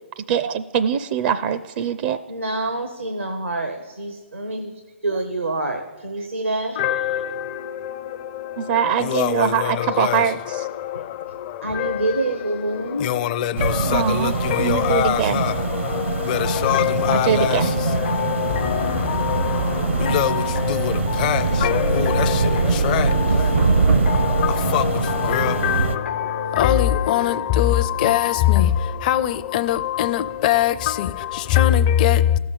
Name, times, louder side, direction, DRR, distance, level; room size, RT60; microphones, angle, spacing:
voice 1, 0.2-2.2 8.6-10.7 13.9-15.4 17.1-17.7, right 8 dB, 45° right, 0.5 m, -23 dB
voice 2, 2.3-4.7 5.0-7.0 10.9-11.0 11.6-13.1, right 2 dB, 90° right, 1.2 m, -27 dB
voice 3, 6.8-32.4, left 11 dB, 40° left, 0.5 m, -23 dB
sound 1, 13.6-26.0, right 4 dB, 70° right, 0.8 m, -23 dB
sound 2, 16.4-28.6, left 8 dB, 65° left, 1.1 m, -30 dB
14.5 x 6.4 x 7.5 m
figure-of-eight pair, 125°, 7 cm